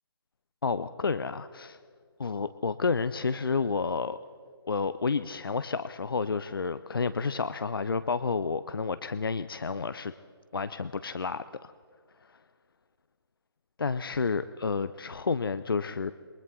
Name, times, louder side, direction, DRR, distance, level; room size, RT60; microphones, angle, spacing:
voice 1, 0.6-1.8 2.2-4.2 4.7-10.1 10.5-11.7 12.2-12.4 13.8-16.1, left 4 dB, 60° left, 13 dB, 0.7 m, -30 dB
27.5 x 23.0 x 4.2 m, 2.2 s
figure-of-eight pair, 145°, 13 cm